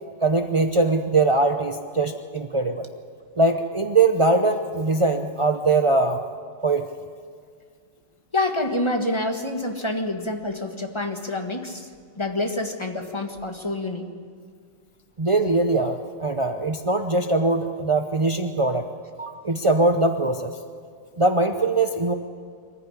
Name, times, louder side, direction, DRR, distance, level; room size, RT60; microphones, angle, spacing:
voice 1, 0.2-2.9 3.4-6.2 6.6-6.9 15.2-18.8 19.2-20.5 21.2-22.1, right 3 dB, 55° right, 5 dB, 0.3 m, -21 dB
voice 2, 8.3-11.9 12.2-14.0, left 2 dB, 15° left, 4 dB, 1.4 m, -27 dB
23.5 x 15.0 x 9.8 m, 2.1 s
omnidirectional pair, 1.9 m